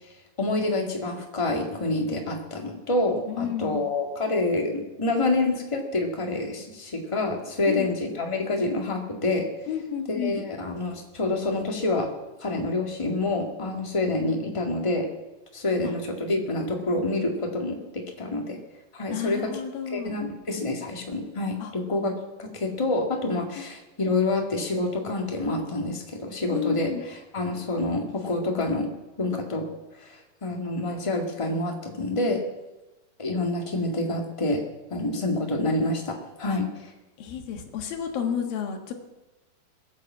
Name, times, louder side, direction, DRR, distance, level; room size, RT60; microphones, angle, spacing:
voice 1, 0.4-9.5 10.1-12.1 12.4-15.1 15.5-18.6 18.9-19.5 19.9-28.9 29.2-29.7 30.0-32.4 33.2-34.6 34.9-36.9, left 2 dB, 15° left, 1 dB, 1.1 m, -27 dB
voice 2, 3.3-3.9 7.7-7.9 9.7-10.4 19.1-20.2 21.6-21.7 23.6-23.7 26.5-27.0 36.5-36.6 37.2-38.9, left 8 dB, 80° left, 4 dB, 3.4 m, -31 dB
21.5 x 8.5 x 7.5 m, 1.1 s
omnidirectional pair, 4.2 m